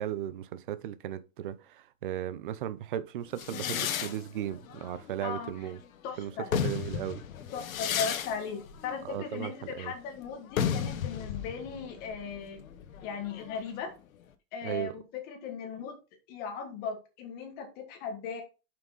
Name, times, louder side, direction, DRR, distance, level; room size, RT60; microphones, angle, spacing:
voice 1, 0.0-5.8 6.2-7.2 9.0-9.9 14.6-14.9, right 11 dB, 40° right, 0.5 m, -36 dB
sound 1, 3.4-5.9 6.3-13.8, left 8 dB, 90° left, 1.2 m, -35 dB
voice 2, 5.2-5.6 6.0-6.5 7.5-12.6 13.0-13.9 14.5-16.0 16.3-18.4, left 6 dB, 25° left, 1.4 m, -38 dB
7.3 x 5.8 x 4.0 m
supercardioid pair, 175°, 40 cm